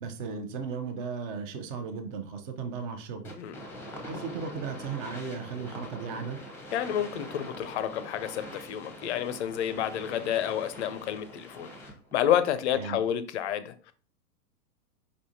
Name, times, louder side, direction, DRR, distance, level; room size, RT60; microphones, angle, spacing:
voice 1, 0.0-3.3 4.0-6.4 12.7-13.0, right 5 dB, 35° right, 0.7 m, -36 dB
sound 1, 3.2-12.1, left 1 dB, 5° left, 0.8 m, -44 dB
voice 2, 6.7-11.7 12.1-13.9, left 10 dB, 45° left, 0.5 m, -29 dB
5.1 x 3.4 x 2.7 m
hypercardioid pair, 110°, 48 cm